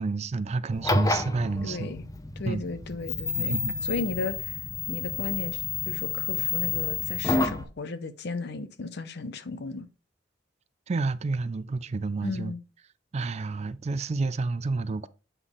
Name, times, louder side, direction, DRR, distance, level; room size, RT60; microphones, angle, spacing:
voice 1, 0.0-1.9 2.5-2.6 3.4-3.8 10.9-12.5 13.1-15.1, right 3 dB, 35° right, 0.4 m, -30 dB
sound 1, 0.7-7.6, left 4 dB, 20° left, 0.6 m, -29 dB
voice 2, 1.6-2.1 2.4-4.6 4.9-9.9 12.2-12.6, left 3 dB, 60° left, 0.7 m, -35 dB
8.0 x 3.9 x 3.7 m
head